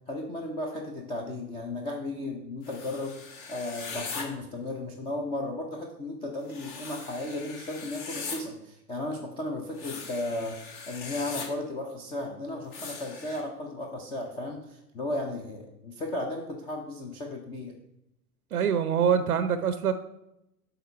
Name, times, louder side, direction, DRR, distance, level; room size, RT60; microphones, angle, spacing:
voice 1, 0.1-3.2 3.5-17.8, left 2 dB, 10° left, 1 dB, 0.6 m, -35 dB
sound 1, 2.6-4.2 6.5-8.4 9.7-11.5 12.7-13.4, left 4 dB, 40° left, 1.5 m, -40 dB
voice 2, 18.5-19.9, right 7 dB, 65° right, 12 dB, 0.7 m, -24 dB
7.8 x 3.9 x 5.3 m, 0.85 s
figure-of-eight pair, 95°, 47 cm